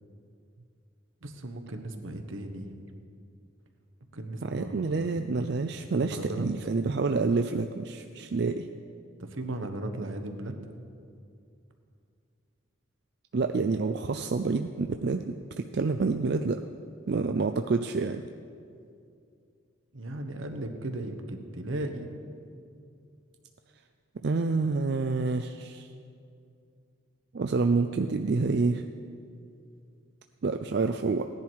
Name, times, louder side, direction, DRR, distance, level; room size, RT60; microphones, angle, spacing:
voice 1, 1.2-2.7 4.1-5.1 6.0-6.5 9.3-10.5 19.9-22.1, right 1 dB, 80° right, 5 dB, 1.2 m, -36 dB
voice 2, 4.4-8.7 13.3-16.6 17.1-18.2 24.2-25.9 27.3-28.9 30.4-31.3, right 4 dB, 55° right, 7 dB, 0.4 m, -28 dB
17.5 x 10.5 x 4.6 m, 2.4 s
head